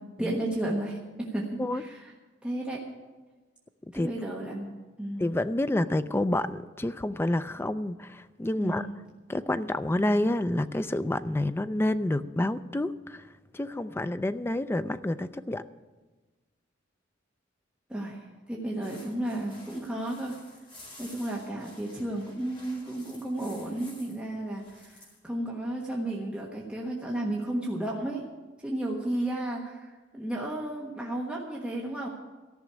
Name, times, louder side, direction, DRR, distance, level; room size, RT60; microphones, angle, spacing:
voice 1, 0.2-2.1 2.4-2.9 3.9-4.7 5.0-5.2 8.6-8.9 17.9-20.4 21.0-28.3 28.6-32.1, right 1 dB, 5° right, -4 dB, 1.3 m, -33 dB
voice 2, 5.2-8.9 9.3-15.6, left 1 dB, 10° left, 12 dB, 0.4 m, -29 dB
sound 1, 18.8-24.2 24.5-25.2, left 1 dB, 30° left, 4.5 m, -52 dB
14.0 x 6.2 x 9.7 m, 1.2 s
head